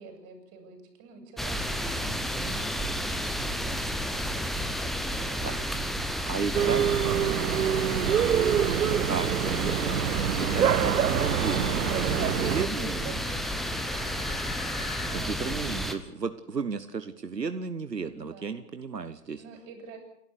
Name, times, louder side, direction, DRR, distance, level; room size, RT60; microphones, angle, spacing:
voice 1, 0.0-6.4 12.0-14.4 15.1-15.7 18.1-18.6 19.4-20.0, right 4 dB, 30° right, 5 dB, 7.2 m, -47 dB
sound 1, 1.4-15.9, equal, ahead, 0.8 m, -31 dB
voice 2, 6.0-6.8 9.1-9.6 10.4-13.2 15.1-19.4, right 5 dB, 90° right, 10 dB, 1.3 m, -34 dB
sound 2, 6.5-12.6, right 9 dB, 65° right, 1.0 m, -26 dB
sound 3, 9.0-15.3, left 7 dB, 30° left, 3.7 m, -46 dB
29.0 x 12.5 x 8.4 m, 0.77 s
figure-of-eight pair, 125°, 48 cm